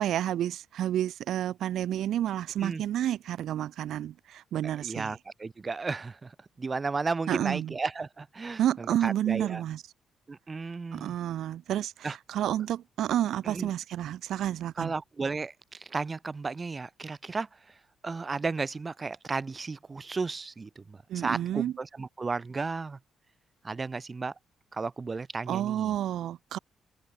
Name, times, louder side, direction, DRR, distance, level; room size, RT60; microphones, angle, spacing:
voice 1, 0.0-5.2 7.3-7.7 8.6-9.8 10.9-14.9 21.1-21.7 25.5-26.6, right 11 dB, 75° right, 1.8 m, -30 dB
voice 2, 4.8-6.3 6.6-9.6 10.3-11.1 12.0-12.1 13.5-13.7 14.8-15.5 15.9-17.5 18.0-23.0 23.6-24.3 24.7-25.9, right 4 dB, 30° right, 2.4 m, -34 dB
open air
cardioid pair, 90°, 0 cm